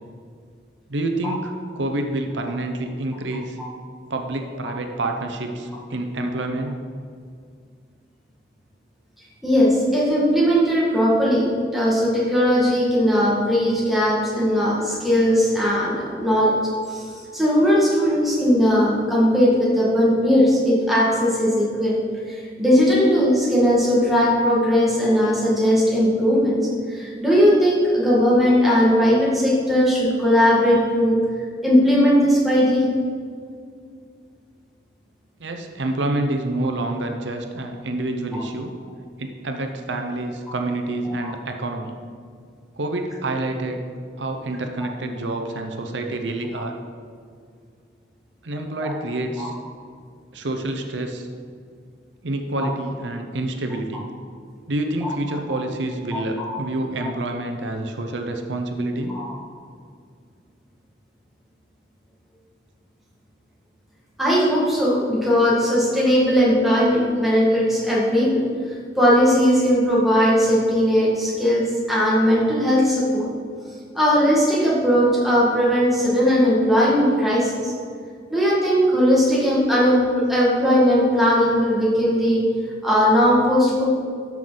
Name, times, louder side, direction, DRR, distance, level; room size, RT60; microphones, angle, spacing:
voice 1, 0.9-3.6 4.1-6.7 35.4-38.7 39.2-41.9 42.7-43.8 44.2-46.7 48.4-49.5 50.3-51.3 52.2-54.0 54.7-59.2, right 2 dB, 85° right, 4 dB, 0.8 m, -27 dB
voice 2, 9.4-16.5 16.9-17.1 17.3-22.0 22.3-26.6 26.9-31.2 31.6-32.9 41.2-41.3 48.8-49.0 49.4-49.5 52.6-52.7 55.0-55.1 56.1-56.2 56.5-56.6 57.0-57.1 59.1-59.2 64.2-68.4 69.0-73.3 73.9-77.7 78.3-82.5 82.8-83.9, equal, ahead, -6 dB, 2.0 m, -18 dB
12.5 x 5.9 x 4.0 m, 2.2 s
head